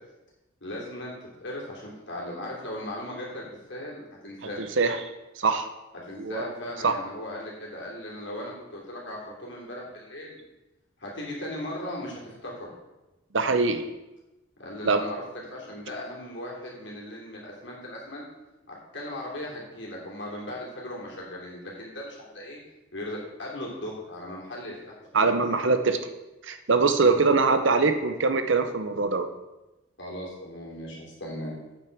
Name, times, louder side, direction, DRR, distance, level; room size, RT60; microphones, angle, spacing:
voice 1, 0.6-1.1 1.4-4.6 6.0-10.4 11.0-12.7 14.6-18.2 18.7-22.6 22.9-24.7 25.0-25.1 27.0-27.3 30.0-31.6, left 1 dB, 60° left, -3 dB, 3.1 m, -37 dB
voice 2, 4.6-5.0 5.4-5.7 6.2-6.5 6.8-6.9 13.3-13.8 14.8-15.0 25.1-26.0 26.4-29.3, right 4 dB, 70° right, 8 dB, 0.8 m, -23 dB
8.5 x 6.0 x 6.0 m, 1.0 s
head